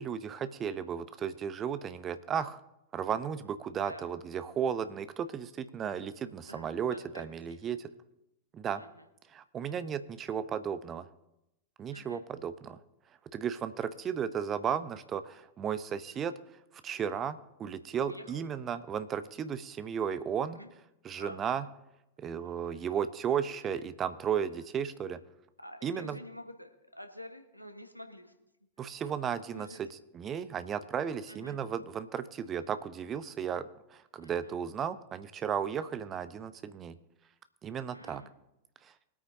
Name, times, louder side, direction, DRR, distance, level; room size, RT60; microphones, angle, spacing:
voice 1, 0.0-2.6 2.9-7.9 8.5-8.8 9.3-11.1 11.8-12.8 13.3-16.3 16.8-20.6 21.0-21.7 22.2-25.2 25.8-26.2 28.8-37.0 37.6-38.2, right 8 dB, 25° right, 13 dB, 0.7 m, -34 dB
voice 2, 6.5-7.2 7.5-7.7 8.8-9.1 11.9-12.2 18.0-18.3 20.5-20.7 21.2-21.4 23.4-23.6 24.5-24.6 25.6-28.3 29.5-29.8 31.3-31.6 34.2-34.5 37.9-38.3, equal, 90° left, 6 dB, 1.3 m, -48 dB
23.0 x 8.7 x 2.7 m, 0.88 s
figure-of-eight pair, 90°, 0 cm